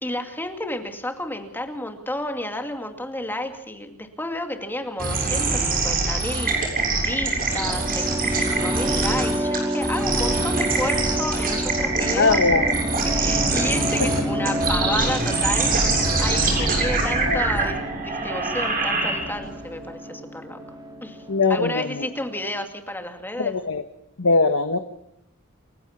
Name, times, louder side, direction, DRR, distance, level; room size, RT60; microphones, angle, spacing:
voice 1, 0.0-6.6 7.0-12.4 13.1-20.6 21.0-21.2 21.5-23.5, left 1 dB, 10° left, 5 dB, 2.4 m, -31 dB
sound 1, 5.0-19.5, right 3 dB, 45° right, 7.1 m, -24 dB
sound 2, 7.2-22.6, equal, 20° right, 3.8 m, -30 dB
voice 2, 12.1-12.7 16.6-16.7 17.3-17.4 21.3-22.1 23.4-23.8 24.2-24.8, left 3 dB, 65° left, 8 dB, 1.2 m, -21 dB
29.0 x 15.5 x 5.9 m, 0.79 s
head